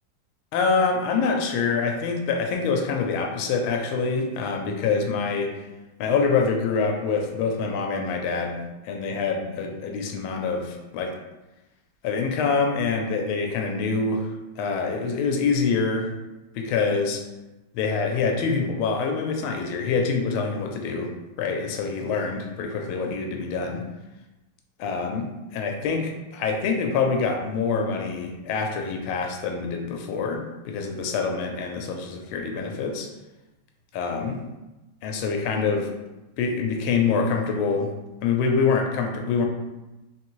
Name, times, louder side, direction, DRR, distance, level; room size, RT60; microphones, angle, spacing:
voice 1, 0.5-5.6 6.0-11.1 12.0-14.3 14.6-16.1 16.5-17.2 17.7-21.1 21.4-23.9 24.8-33.1 33.9-34.4 35.0-35.9 36.4-37.9 38.2-39.4, left 5 dB, 85° left, 3 dB, 1.5 m, -25 dB
3.9 x 3.2 x 3.0 m, 1.0 s
omnidirectional pair, 2.2 m